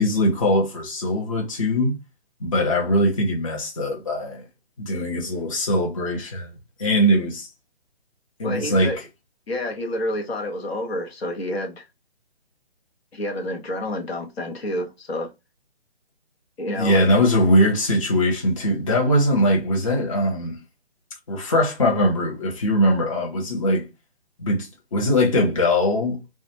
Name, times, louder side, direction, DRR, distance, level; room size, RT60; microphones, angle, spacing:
voice 1, 0.0-1.9 2.4-4.4 4.8-7.5 8.4-8.9 16.8-20.6 21.3-23.8 24.4-26.2, left 1 dB, 30° left, 0.7 m, -21 dB
voice 2, 8.4-9.0 9.5-11.9 13.1-15.3 16.6-17.1, left 1 dB, 65° left, 0.9 m, -29 dB
2.3 x 2.2 x 2.8 m
hypercardioid pair, 160°, 32 cm